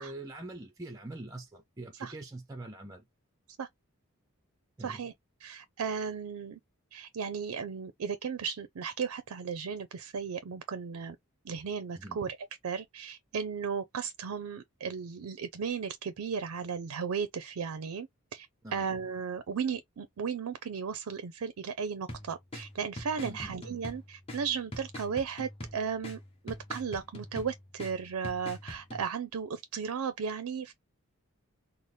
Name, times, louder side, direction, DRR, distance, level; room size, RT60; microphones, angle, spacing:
voice 1, 0.0-3.0 4.8-5.1 11.9-12.2 18.6-18.9 23.2-23.5, right 2 dB, 15° right, 0.5 m, -43 dB
voice 2, 4.8-5.1 5.4-6.6 6.9-11.2 11.4-12.4 12.6-18.5 18.7-30.7, right 6 dB, 85° right, 0.5 m, -35 dB
sound 1, 22.1-29.1, left 1 dB, 25° left, 1.1 m, -44 dB
4.0 x 2.0 x 3.2 m
head